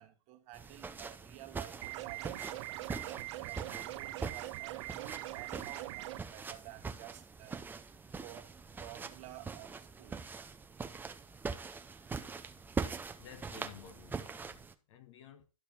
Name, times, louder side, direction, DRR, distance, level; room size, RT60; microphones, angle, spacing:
voice 1, 0.0-7.6 8.1-8.5 8.8-10.3, right 16 dB, 40° right, 1.4 m, -52 dB
sound 1, 0.5-14.7, right 4 dB, 10° right, 0.6 m, -43 dB
sound 2, 1.8-6.2, right 17 dB, 55° right, 0.5 m, -42 dB
voice 2, 12.7-15.5, left 7 dB, 65° left, 1.4 m, -54 dB
11.5 x 5.5 x 4.5 m
hypercardioid pair, 110°, 18 cm